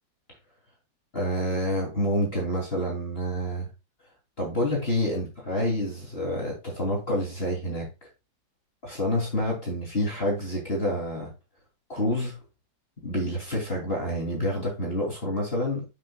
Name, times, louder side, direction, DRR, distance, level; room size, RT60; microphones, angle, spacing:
voice 1, 1.1-3.7 4.4-8.1 8.8-11.3 11.9-12.4 13.0-15.9, equal, 30° left, 3.4 m, -28 dB
8.8 x 8.1 x 2.4 m
omnidirectional pair, 2.1 m